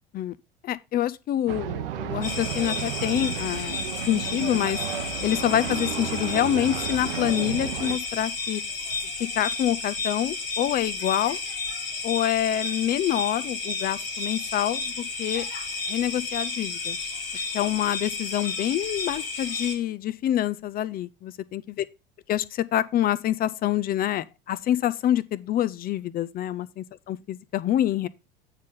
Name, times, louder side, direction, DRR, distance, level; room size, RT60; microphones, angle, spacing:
voice 1, 0.6-4.8 5.2-8.6 9.4-11.4 12.0-14.9 15.2-15.4 15.9-17.0 17.3-21.8 22.3-28.1, left 12 dB, 30° left, 0.5 m, -26 dB
sound 1, 1.5-8.0, right 10 dB, 65° right, 0.9 m, -33 dB
sound 2, 2.2-19.7, left 3 dB, 75° left, 1.7 m, -32 dB
8.8 x 3.9 x 5.3 m
figure-of-eight pair, 70°, 29 cm